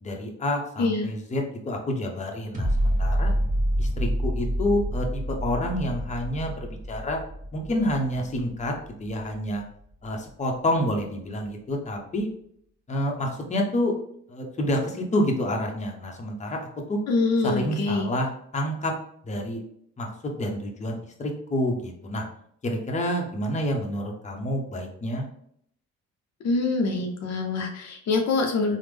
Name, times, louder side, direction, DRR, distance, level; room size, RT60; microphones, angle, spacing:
voice 1, 0.0-3.3 3.8-7.2 7.5-8.7 9.0-9.6 10.0-12.3 12.9-13.9 14.3-17.0 17.4-18.9 19.2-19.6 20.0-20.1 20.4-22.2 22.6-25.2, left 1 dB, 25° left, 1 dB, 0.7 m, -28 dB
sound 1, 2.5-9.6 10.0-10.1, equal, 25° right, 1.0 m, -27 dB
voice 2, 17.1-18.1 26.4-28.8, left 3 dB, 60° left, 3 dB, 0.5 m, -25 dB
3.3 x 2.0 x 3.3 m, 0.67 s
cardioid pair, 90°, 30 cm